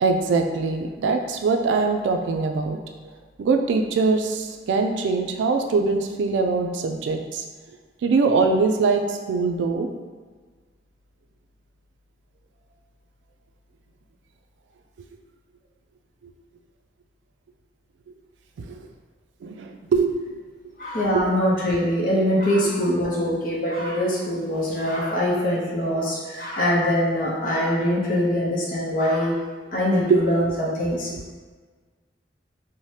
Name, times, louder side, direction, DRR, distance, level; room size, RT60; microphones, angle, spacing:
voice 1, 0.0-2.8 3.4-7.4 8.0-9.9 18.6-18.8 19.4-20.2 21.1-21.2 30.1-30.2 31.1-31.2, right 4 dB, 85° right, 4 dB, 0.3 m, -22 dB
voice 2, 20.8-29.3 29.7-31.1, equal, 50° left, -4 dB, 0.6 m, -23 dB
2.7 x 2.1 x 3.1 m, 1.4 s
head